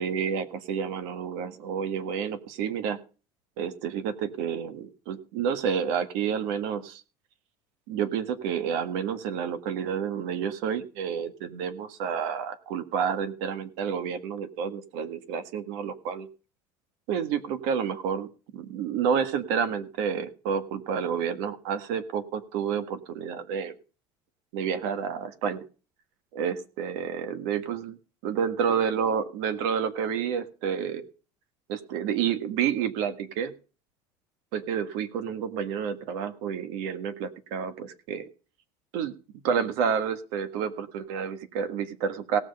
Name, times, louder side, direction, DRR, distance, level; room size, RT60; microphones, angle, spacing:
voice 1, 0.0-3.0 3.6-7.0 7.9-16.3 17.1-23.7 24.5-25.6 26.3-27.9 28.2-31.0 31.7-33.5 34.5-38.3 38.9-39.1 39.4-42.4, right 7 dB, 65° right, 12 dB, 1.6 m, -29 dB
18.0 x 6.2 x 5.3 m, 0.35 s
cardioid pair, 180°, 10 cm